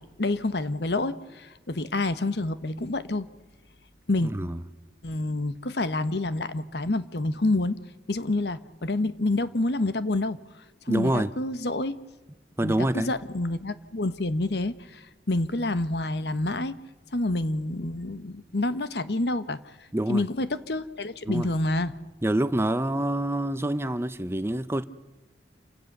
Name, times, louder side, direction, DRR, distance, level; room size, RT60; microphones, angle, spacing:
voice 1, 0.0-3.3 4.1-4.3 5.0-7.8 8.1-10.4 10.9-12.0 12.6-16.8 17.1-19.6 20.1-21.9, left 2 dB, 70° left, 1.1 m, -28 dB
voice 2, 4.2-4.6 10.9-11.3 12.6-13.1 19.9-20.2 21.2-21.5 22.2-24.8, right 1 dB, 15° right, 0.7 m, -26 dB
28.5 x 17.0 x 6.7 m
head